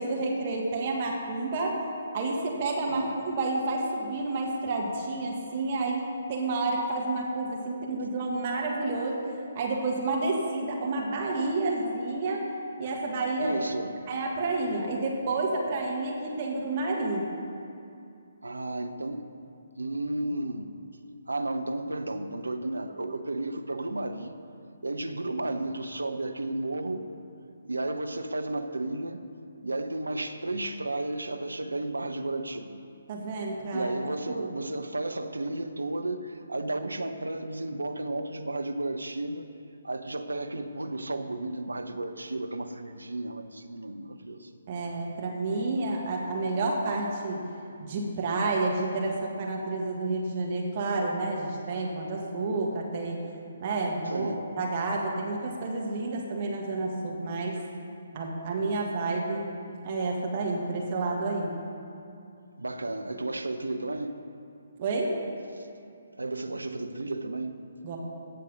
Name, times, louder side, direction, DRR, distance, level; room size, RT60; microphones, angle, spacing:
voice 1, 0.0-1.8 2.1-6.0 6.3-9.2 9.5-12.4 12.8-13.6 14.1-17.3 33.1-33.9 34.3-34.4 44.7-47.4 47.9-53.2 53.6-57.6 58.1-59.4 59.8-61.6 64.8-65.1 67.8-68.0, right 2 dB, 35° right, -1 dB, 1.6 m, -30 dB
voice 2, 2.9-3.2 13.4-14.0 18.4-19.3 19.8-20.7 21.3-24.3 24.8-27.1 27.6-29.2 29.6-32.8 33.7-39.5 39.8-44.5 54.1-54.4 62.6-64.2 65.5-65.7 66.2-67.6, right 2 dB, 70° right, 7 dB, 0.8 m, -33 dB
16.5 x 6.6 x 5.3 m, 2.6 s
figure-of-eight pair, 135°, 0 cm